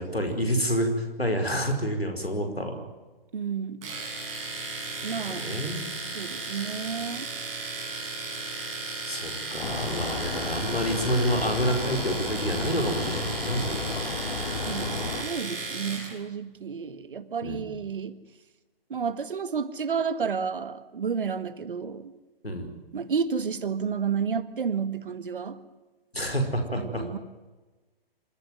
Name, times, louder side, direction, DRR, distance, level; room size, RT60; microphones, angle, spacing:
voice 1, 0.0-2.8 5.1-5.9 9.1-14.0 17.4-17.6 22.4-22.7 26.1-27.0, equal, 90° left, 4 dB, 5.1 m, -28 dB
voice 2, 3.3-3.8 5.0-5.5 6.1-7.3 14.7-18.2 18.9-22.1 22.9-25.6 26.8-27.2, right 6 dB, 60° right, 14 dB, 1.7 m, -31 dB
Domestic sounds home sounds, 3.8-16.1, right 3 dB, 20° right, 5.7 m, -35 dB
sound 1, 9.6-15.2, left 3 dB, 60° left, 3.2 m, -33 dB
27.0 x 15.0 x 9.4 m, 1.2 s
figure-of-eight pair, 130°, 30 cm